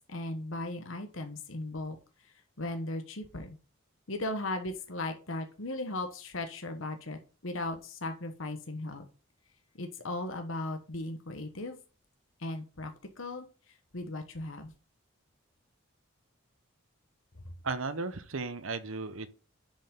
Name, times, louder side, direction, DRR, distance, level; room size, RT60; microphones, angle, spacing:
voice 1, 0.1-3.6 4.1-9.1 9.8-11.8 12.4-14.7, left 2 dB, 70° left, 1.2 m, -37 dB
voice 2, 17.6-19.3, right 3 dB, 75° right, 1.0 m, -35 dB
10.0 x 5.4 x 3.8 m
head